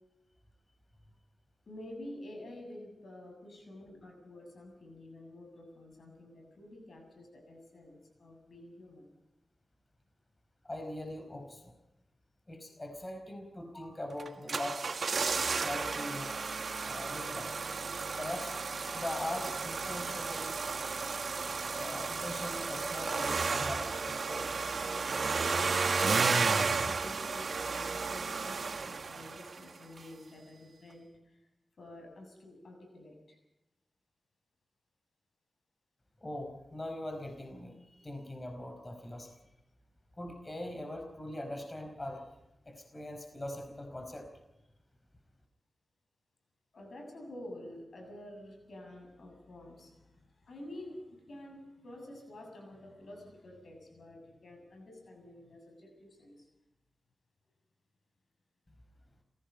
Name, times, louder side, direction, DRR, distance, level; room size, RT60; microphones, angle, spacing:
voice 1, 1.7-9.1 25.8-31.4 31.8-33.4 46.7-56.5, left 1 dB, 70° left, 3 dB, 7.3 m, -49 dB
voice 2, 10.6-11.7 12.5-14.8 15.6-16.3 16.8-17.5 18.2-18.5 18.8-20.6 21.7-24.7 36.2-39.3 40.2-42.2 42.6-44.3, left 1 dB, 30° left, 4 dB, 4.8 m, -41 dB
sound 1, 14.2-29.7 30.0-30.1, right 4 dB, 70° right, 1.5 m, -33 dB
28.5 x 17.5 x 5.5 m, 0.91 s
cardioid pair, 55°, 0 cm